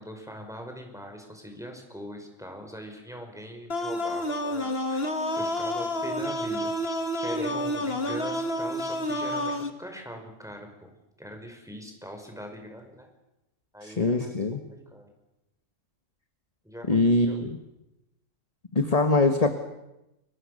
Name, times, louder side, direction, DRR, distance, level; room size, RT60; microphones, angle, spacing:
voice 1, 0.0-10.9 11.2-13.1 13.7-14.4 14.7-15.1 16.6-17.4, equal, ahead, 3 dB, 5.1 m, -41 dB
sound 1, 3.7-9.7, left 1 dB, 45° left, 2.1 m, -29 dB
voice 2, 13.8-14.6 16.9-17.5 18.7-19.5, left 2 dB, 25° left, 7 dB, 1.5 m, -23 dB
29.5 x 24.0 x 6.6 m, 0.93 s
omnidirectional pair, 1.5 m